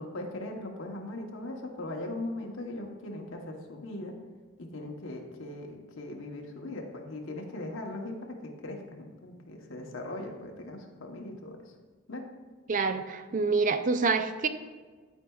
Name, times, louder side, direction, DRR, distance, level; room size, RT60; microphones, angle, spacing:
voice 1, 0.0-4.1 4.6-8.2 8.4-11.6 12.1-12.3, left 2 dB, 75° left, 1 dB, 1.0 m, -39 dB
voice 2, 12.7-14.5, right 4 dB, 40° right, 10 dB, 0.4 m, -27 dB
12.0 x 4.5 x 2.3 m, 1.4 s
head